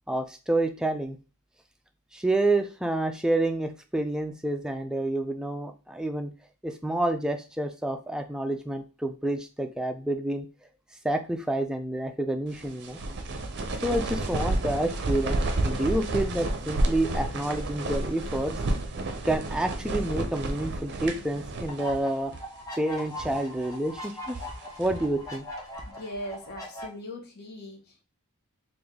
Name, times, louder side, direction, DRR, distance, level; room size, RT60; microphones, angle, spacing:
voice 1, 0.1-1.2 2.1-6.3 6.6-10.5 11.0-13.0 13.8-15.4 15.6-18.6 19.2-22.3 22.8-24.4 24.8-25.5, right 1 dB, 5° right, 5 dB, 0.4 m, -28 dB
sound 1, 12.5-22.0 22.3-22.4 23.0-23.5 24.1-25.2, right 2 dB, 50° right, 0.6 m, -31 dB
sound 2, 21.7-26.9, equal, 15° left, 0.9 m, -40 dB
voice 2, 25.9-28.0, left 1 dB, 45° left, 1 dB, 0.9 m, -40 dB
3.4 x 2.5 x 3.5 m, 0.32 s
head